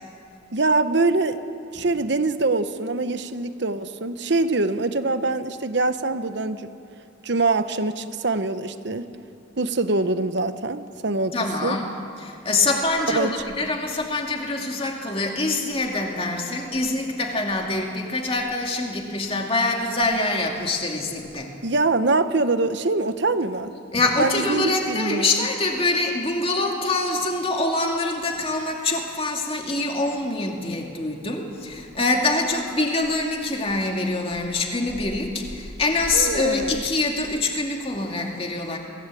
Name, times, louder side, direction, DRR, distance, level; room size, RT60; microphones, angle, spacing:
voice 1, 0.5-1.4 1.7-6.7 7.2-9.1 9.6-11.4 11.6-11.8 13.1-13.3 21.6-23.7 24.2-25.5 36.1-36.8, right 3 dB, 60° right, 11 dB, 1.0 m, -24 dB
voice 2, 11.3-11.9 12.2-21.5 23.9-38.8, left 2 dB, 30° left, 1 dB, 2.4 m, -25 dB
23.0 x 16.0 x 8.5 m, 2.6 s
head